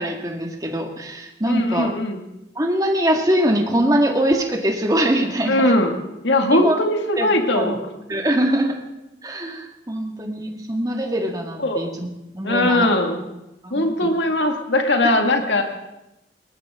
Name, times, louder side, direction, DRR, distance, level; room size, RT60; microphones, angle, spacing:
voice 1, 0.0-1.9 2.6-5.7 6.5-6.8 7.2-7.7 8.1-8.8 9.2-12.9 13.6-14.1, right 1 dB, 20° right, 2 dB, 1.9 m, -23 dB
voice 2, 1.5-2.2 5.5-5.9 6.2-7.9 11.6-11.8 12.4-13.2 13.7-15.6, left 1 dB, 90° left, 4 dB, 2.1 m, -20 dB
20.5 x 19.0 x 3.8 m, 0.92 s
head